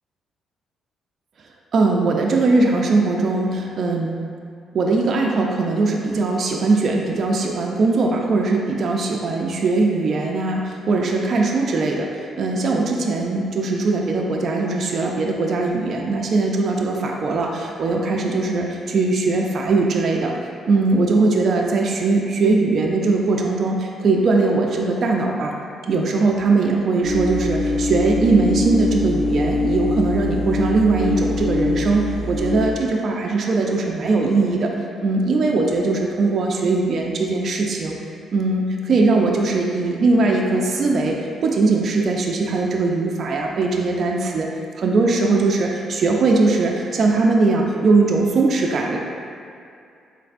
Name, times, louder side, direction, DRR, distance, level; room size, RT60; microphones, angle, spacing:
voice 1, 1.7-4.1 4.7-12.1 12.4-20.3 20.7-25.5 25.9-34.7 35.0-38.0 38.3-44.5 44.8-49.0, right 3 dB, 55° right, 0 dB, 0.4 m, -20 dB
sound 1, 27.0-32.7, left 2 dB, 90° left, 0.7 m, -23 dB
4.2 x 3.2 x 2.5 m, 2.5 s
cardioid pair, 90°, 0 cm